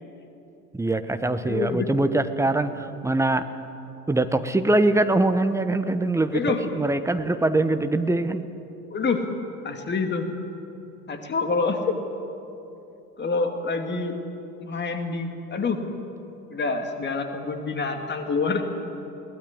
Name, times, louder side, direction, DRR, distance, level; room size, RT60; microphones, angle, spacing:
voice 1, 0.7-3.5 4.1-8.4, right 2 dB, 5° right, 9 dB, 1.1 m, -23 dB
voice 2, 1.4-1.9 6.3-6.8 8.9-9.3 9.6-10.3 11.1-12.0 13.2-14.2 14.6-15.8 16.5-18.6, left 4 dB, 20° left, 5 dB, 2.4 m, -27 dB
22.0 x 18.0 x 9.8 m, 2.9 s
figure-of-eight pair, 80°, 48 cm